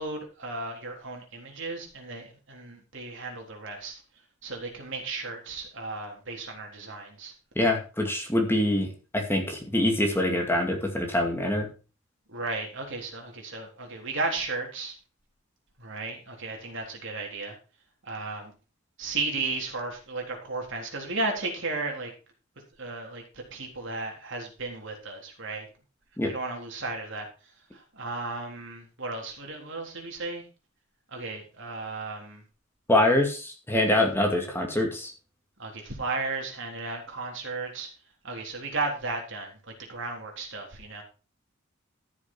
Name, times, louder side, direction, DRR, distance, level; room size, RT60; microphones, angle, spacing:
voice 1, 0.0-4.0 4.4-7.3 12.3-14.9 15.8-17.5 18.0-18.5 19.0-22.1 22.8-23.2 23.5-25.7 26.2-27.3 28.0-30.4 31.1-32.4 35.6-37.9 38.2-39.5 39.9-41.0, right 3 dB, 60° right, 1 dB, 3.7 m, -34 dB
voice 2, 7.6-8.9 9.1-11.7 26.2-26.3 32.9-35.1, left 1 dB, 10° left, 2 dB, 2.4 m, -24 dB
13.5 x 7.3 x 4.5 m, 0.33 s
head